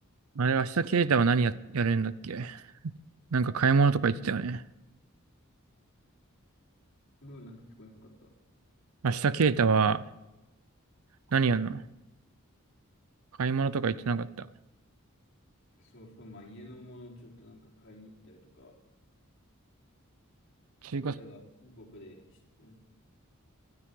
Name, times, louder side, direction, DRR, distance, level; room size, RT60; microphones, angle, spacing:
voice 1, 0.4-2.9 3.3-4.6 9.0-10.0 11.3-11.8 13.4-14.5 20.8-21.1, right 5 dB, 85° right, 16 dB, 0.6 m, -26 dB
voice 2, 7.2-8.4 15.7-18.8 21.0-22.7, left 1 dB, 60° left, -2 dB, 3.8 m, -50 dB
24.0 x 12.5 x 3.8 m, 0.99 s
head